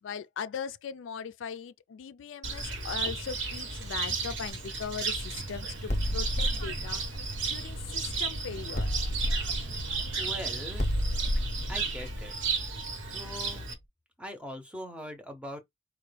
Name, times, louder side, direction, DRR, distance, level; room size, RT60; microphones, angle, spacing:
voice 1, 0.0-7.0 7.5-8.9, left 7 dB, 90° left, 0.4 m, -39 dB
Cricket, 2.4-13.7, right 4 dB, 85° right, 1.1 m, -34 dB
voice 2, 2.6-3.0 10.2-10.8 11.7-12.4 13.0-13.7 14.2-15.6, equal, 5° right, 0.6 m, -41 dB
sound 1, 5.3-11.5, right 4 dB, 65° right, 0.4 m, -44 dB
sound 2, 5.9-8.2 8.8-13.4, equal, 35° left, 0.7 m, -32 dB
4.3 x 2.2 x 3.2 m
head